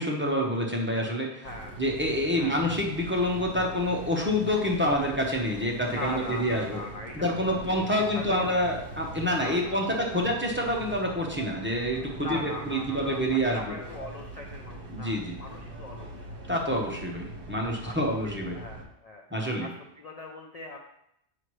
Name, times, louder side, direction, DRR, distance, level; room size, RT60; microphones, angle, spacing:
voice 1, 0.0-1.5 1.8-6.8 7.1-13.8 14.9-15.3 16.5-18.6 19.3-19.7, equal, 10° right, -1 dB, 0.9 m, -27 dB
voice 2, 1.4-1.8 2.4-2.6 5.9-7.1 7.4-7.7 7.9-8.6 9.3-10.2 11.9-16.3 17.8-18.0 18.2-19.2 19.6-20.8, left 2 dB, 45° left, 1 dB, 0.6 m, -41 dB
sound 1, 1.4-18.8, right 1 dB, 55° right, 1.3 m, -42 dB
7.8 x 5.7 x 3.2 m, 0.77 s
omnidirectional pair, 1.2 m